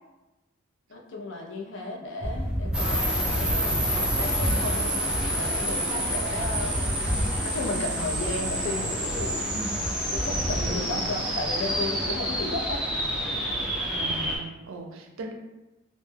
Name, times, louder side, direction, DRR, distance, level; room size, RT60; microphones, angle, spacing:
voice 1, 0.9-4.9 5.2-6.9 7.4-9.5 10.1-12.8, left 2 dB, 70° left, -1 dB, 0.5 m, -34 dB
sound 1, 2.2-10.8, equal, 30° right, 0.8 m, -32 dB
sound 2, 2.7-14.4, equal, 5° right, 0.4 m, -28 dB
voice 2, 9.5-9.8 10.5-11.3 13.9-15.3, right 2 dB, 85° right, 3 dB, 0.4 m, -38 dB
2.1 x 2.0 x 3.2 m, 1.0 s
head